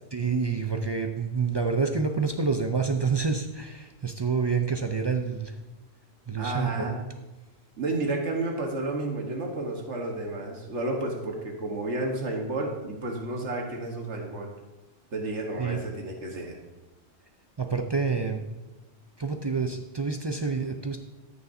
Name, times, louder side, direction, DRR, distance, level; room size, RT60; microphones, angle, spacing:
voice 1, 0.1-5.6 6.3-6.9 15.6-15.8 17.6-18.4 19.2-21.0, right 5 dB, 45° right, 5 dB, 0.3 m, -28 dB
voice 2, 6.4-7.0 7.8-14.5 15.1-16.6, right 2 dB, 85° right, 1 dB, 1.6 m, -31 dB
14.0 x 6.7 x 2.6 m, 1.1 s
omnidirectional pair, 1.2 m